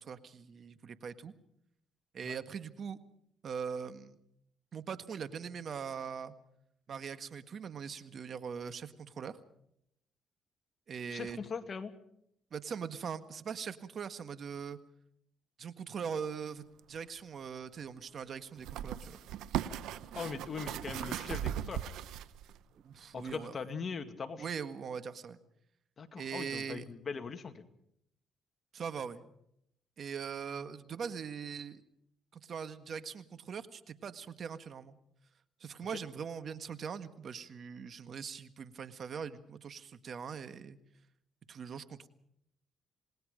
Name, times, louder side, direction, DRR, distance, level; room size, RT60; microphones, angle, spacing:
voice 1, 0.0-1.3 2.1-3.0 3.4-4.2 4.7-6.3 6.9-9.4 10.9-11.4 12.5-14.8 15.6-19.2 22.8-23.6 24.4-25.4 26.2-26.9 28.7-29.2 30.0-31.8 32.3-35.0 35.6-40.8 41.5-42.1, right 6 dB, 55° right, 11 dB, 1.7 m, -41 dB
voice 2, 11.1-11.9 20.1-21.8 23.1-24.5 26.0-27.7 35.9-36.0, left 5 dB, 45° left, 7 dB, 2.2 m, -40 dB
sound 1, 16.8-16.9 18.6-22.6 23.2-23.3, right 11 dB, 85° right, 0.9 m, -38 dB
28.0 x 20.0 x 5.2 m, 0.73 s
cardioid pair, 90°, 0 cm